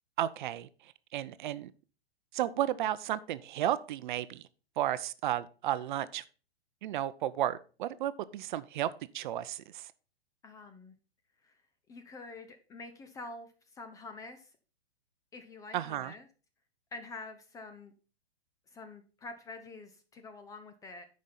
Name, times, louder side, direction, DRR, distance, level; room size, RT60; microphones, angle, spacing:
voice 1, 0.2-1.7 2.3-4.4 4.8-6.2 6.8-9.9 15.7-16.1, right 12 dB, 50° right, 0.6 m, -33 dB
voice 2, 10.4-11.0 11.4-11.5 11.9-14.5 15.3-16.2 16.9-17.9 18.7-21.1, left 3 dB, 10° left, 0.4 m, -47 dB
9.2 x 5.2 x 4.1 m
hypercardioid pair, 125°, 31 cm